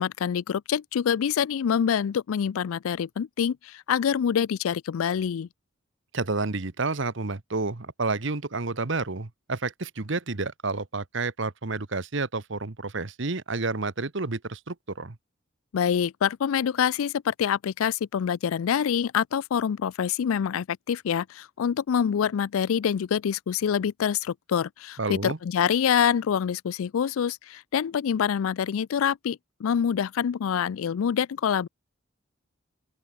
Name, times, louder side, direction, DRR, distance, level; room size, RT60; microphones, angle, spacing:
voice 1, 0.0-5.5 15.7-31.7, left 8 dB, 80° left, 0.4 m, -26 dB
voice 2, 6.1-15.2 25.0-25.4, right 3 dB, 60° right, 1.2 m, -30 dB
open air
head